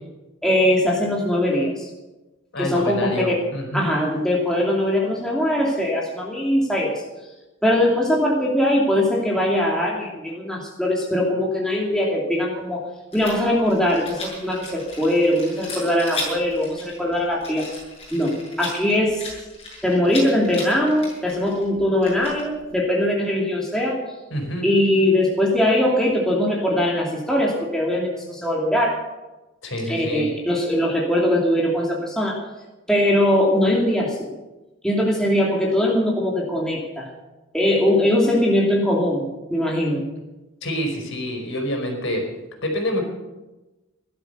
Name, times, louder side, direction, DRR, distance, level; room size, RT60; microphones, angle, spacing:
voice 1, 0.4-1.9 2.6-3.3 3.7-7.0 7.6-12.8 13.1-17.7 18.1-19.2 19.8-24.0 24.6-29.0 29.9-32.4 32.9-34.3 34.8-37.1 37.5-40.0, left 1 dB, 5° left, -3 dB, 2.6 m, -21 dB
voice 2, 2.5-3.9 24.3-24.7 29.6-30.2 40.6-42.2 42.6-43.0, equal, 60° left, 2 dB, 4.9 m, -27 dB
Rattle, 13.1-22.7, left 2 dB, 30° left, 7.4 m, -36 dB
17.0 x 12.0 x 6.8 m, 1.1 s
head